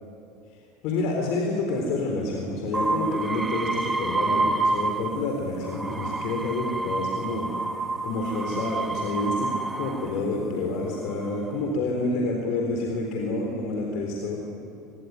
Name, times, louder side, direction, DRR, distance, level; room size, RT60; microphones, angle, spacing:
voice 1, 0.8-7.5 8.0-14.4, left 2 dB, 55° left, 1 dB, 3.9 m, -28 dB
sound 1, 2.7-5.3 5.6-10.2 10.9-11.5, right 3 dB, 15° right, 1.5 m, -28 dB
25.0 x 22.0 x 9.6 m, 2.6 s
figure-of-eight pair, 70°, 0 cm